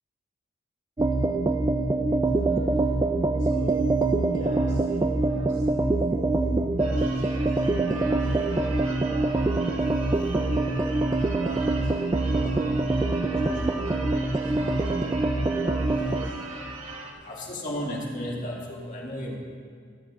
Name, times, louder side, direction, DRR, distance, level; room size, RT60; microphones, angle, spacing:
sound 1, 1.0-16.3, right 2 dB, 20° right, 0.3 m, -25 dB
voice 1, 2.2-2.9 3.3-6.4 6.8-10.8 11.4-14.0 14.4-14.9 15.6-16.4, right 1 dB, 50° right, -6 dB, 3.0 m, -43 dB
Church bell / Car / Alarm, 6.8-17.1, right 2 dB, 85° right, 1.7 m, -40 dB
voice 2, 17.2-19.4, equal, 40° left, -3 dB, 2.0 m, -33 dB
23.0 x 9.1 x 2.5 m, 2.1 s
head